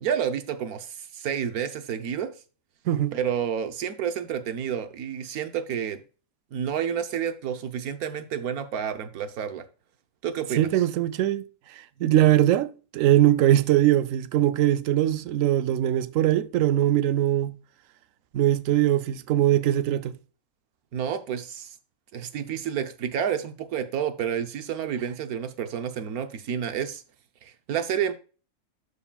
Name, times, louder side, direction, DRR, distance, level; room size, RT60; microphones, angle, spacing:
voice 1, 0.0-2.3 3.1-6.0 6.5-9.6 10.2-10.7 20.9-21.7 22.1-27.0 27.4-28.1, right 8 dB, 85° right, 1.3 m, -30 dB
voice 2, 2.9-3.2 10.6-11.4 11.7-17.5 18.3-20.2, right 13 dB, 70° right, 0.9 m, -21 dB
12.5 x 5.0 x 2.3 m
omnidirectional pair, 1.5 m